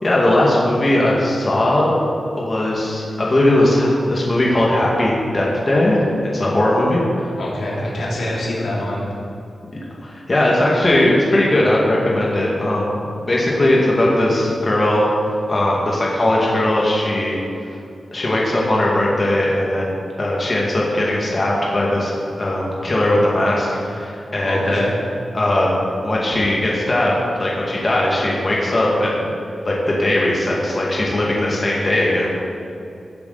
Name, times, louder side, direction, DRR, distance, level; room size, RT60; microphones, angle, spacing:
voice 1, 0.0-2.0 2.4-6.1 6.3-7.3 10.0-15.1 15.5-17.4 18.1-19.9 20.2-22.1 22.4-24.8 25.3-29.2 29.6-32.3, left 1 dB, 30° left, -4 dB, 1.9 m, -18 dB
voice 2, 7.4-9.1 24.4-24.9, left 1 dB, 85° left, -6 dB, 3.1 m, -25 dB
16.5 x 8.2 x 4.1 m, 2.6 s
wide cardioid pair, 145°, 0 cm